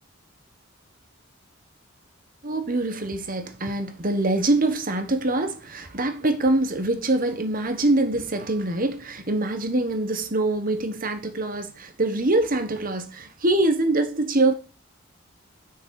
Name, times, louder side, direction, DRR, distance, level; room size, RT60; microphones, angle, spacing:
voice 1, 2.4-14.5, right 2 dB, 40° right, 1.3 m, -24 dB
6.7 x 6.4 x 7.7 m
head